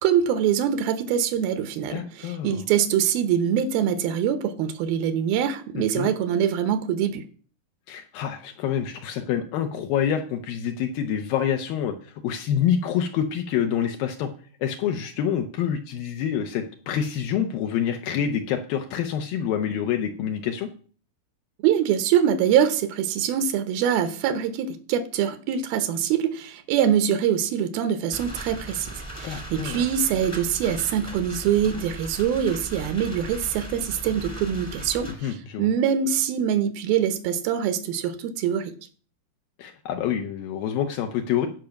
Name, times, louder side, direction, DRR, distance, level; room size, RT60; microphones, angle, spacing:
voice 1, 0.0-7.3 21.6-38.8, right 9 dB, 80° right, 2.6 m, -24 dB
voice 2, 1.9-2.6 5.8-6.1 7.9-11.9 12.2-14.3 14.6-20.7 29.2-29.8 35.2-35.7 39.6-41.5, left 9 dB, 75° left, 2.5 m, -27 dB
sound 1, 28.1-35.1, right 1 dB, 10° left, 1.0 m, -38 dB
14.0 x 5.3 x 5.8 m
omnidirectional pair, 4.3 m